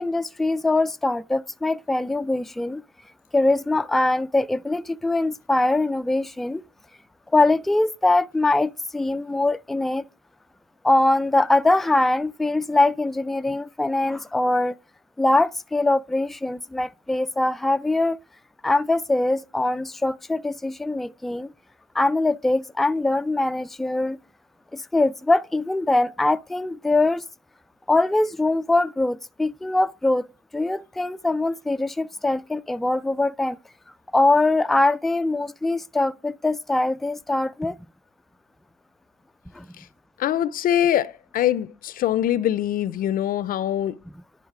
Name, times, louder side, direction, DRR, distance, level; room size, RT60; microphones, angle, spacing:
voice 1, 0.0-2.8 3.3-6.6 7.3-10.0 10.8-14.7 15.2-18.2 18.6-21.5 21.9-24.2 24.7-27.2 27.9-30.3 30.5-33.6 34.1-37.8 39.5-39.7, left 2 dB, ahead, 0.3 m, -22 dB
voice 2, 40.2-44.0, left 11 dB, 55° left, 0.5 m, -23 dB
11.0 x 3.9 x 4.8 m
cardioid pair, 110°, 17 cm